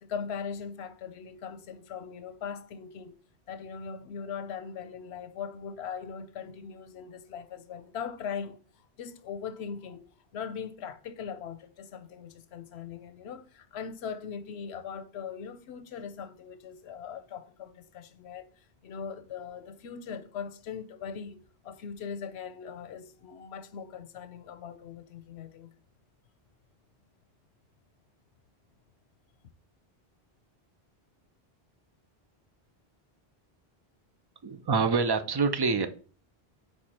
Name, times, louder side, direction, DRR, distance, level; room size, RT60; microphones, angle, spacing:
voice 1, 0.0-3.2 3.5-8.6 9.0-10.0 10.3-25.7, left 6 dB, 90° left, 0.9 m, -40 dB
voice 2, 34.4-35.9, right 4 dB, 40° right, 0.3 m, -26 dB
4.7 x 4.6 x 4.3 m
omnidirectional pair, 1.0 m